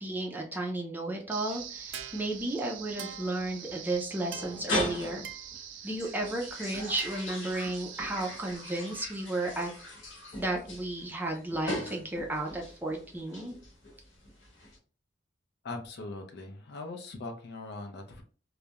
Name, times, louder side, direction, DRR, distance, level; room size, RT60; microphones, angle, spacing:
voice 1, 0.0-5.2 5.8-9.7 10.4-13.6, right 2 dB, 10° right, 0 dB, 0.4 m, -33 dB
sound 1, 1.3-10.3, right 9 dB, 80° right, 0.4 m, -45 dB
sound 2, 1.5-14.8, left 1 dB, 75° left, 1.0 m, -40 dB
voice 2, 15.6-18.2, left 2 dB, 60° left, 4 dB, 0.5 m, -40 dB
2.3 x 2.0 x 2.8 m, 0.40 s
head